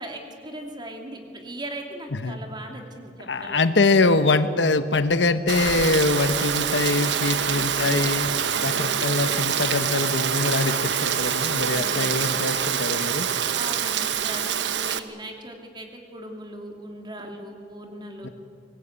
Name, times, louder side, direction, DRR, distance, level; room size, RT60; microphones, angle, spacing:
voice 1, 0.0-3.7 7.4-7.9 8.5-9.1 11.7-12.3 13.5-18.3, right 1 dB, 25° right, 3 dB, 2.7 m, -39 dB
voice 2, 3.3-8.3 8.6-13.3 18.2-18.3, left 3 dB, 80° left, 11 dB, 1.1 m, -23 dB
Rain, 5.5-15.0, right 8 dB, 80° right, 1.0 m, -25 dB
23.5 x 19.0 x 8.9 m, 2.4 s
head